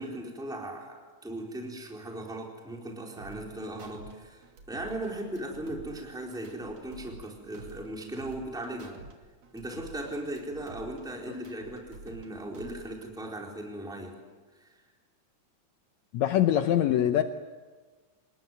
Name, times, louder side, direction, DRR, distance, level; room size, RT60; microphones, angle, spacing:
voice 1, 0.0-9.0 9.5-14.2 14.5-14.8, right 1 dB, ahead, 0 dB, 3.9 m, -38 dB
sound 1, 3.2-4.1 4.4-7.3 7.5-9.1 9.4-12.3 12.5-13.2, right 3 dB, 60° right, 3.8 m, -49 dB
voice 2, 16.1-17.2, left 11 dB, 70° left, 7 dB, 2.1 m, -23 dB
27.0 x 20.5 x 9.4 m, 1.4 s
omnidirectional pair, 3.5 m